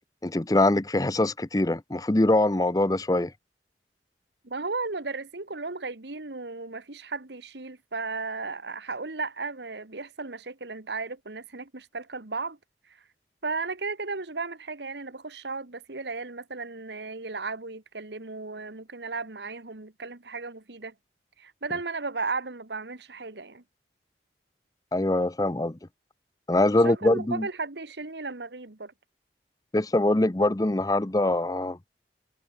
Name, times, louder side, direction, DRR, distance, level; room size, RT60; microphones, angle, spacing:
voice 1, 0.2-3.3 24.9-25.8 26.5-27.5 29.7-31.8, left 1 dB, 20° left, 0.6 m, -23 dB
voice 2, 4.4-12.6 13.4-20.9 21.4-23.6 26.7-28.9, right 3 dB, 70° right, 1.6 m, -35 dB
head